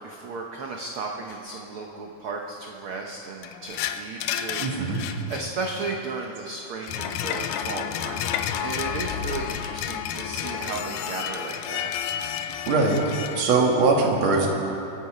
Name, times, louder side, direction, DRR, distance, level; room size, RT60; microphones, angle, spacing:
voice 1, 0.0-8.3 8.6-11.9 12.4-12.7, right 3 dB, 85° right, 1 dB, 1.2 m, -35 dB
sound 1, 1.3-1.4 3.4-5.9 6.7-13.4, left 9 dB, 90° left, 2.3 m, -31 dB
voice 2, 4.6-5.0 12.7-13.0 13.4-14.5, right 3 dB, 60° right, 0 dB, 2.8 m, -21 dB
24.0 x 9.5 x 4.9 m, 2.8 s
omnidirectional pair, 3.7 m